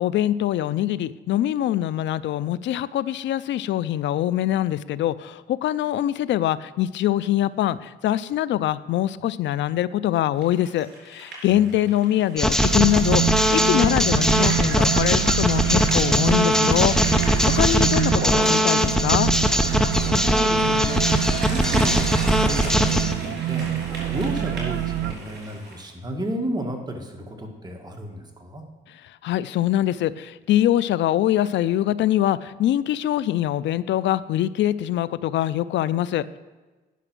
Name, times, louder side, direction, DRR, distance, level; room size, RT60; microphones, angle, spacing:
voice 1, 0.0-17.0 17.5-19.3 29.2-36.4, left 12 dB, 70° left, 17 dB, 0.4 m, -23 dB
sound 1, 10.4-25.8, right 2 dB, 60° right, 3.8 m, -36 dB
sound 2, 12.4-23.1, left 1 dB, 5° left, 0.6 m, -21 dB
sound 3, 12.6-25.1, right 14 dB, 75° right, 0.4 m, -26 dB
voice 2, 17.5-18.0 20.0-21.0 21.5-23.8 24.1-28.6, right 1 dB, 20° right, 2 dB, 1.6 m, -32 dB
10.0 x 5.9 x 6.0 m, 1.2 s
cardioid pair, 90°, 20 cm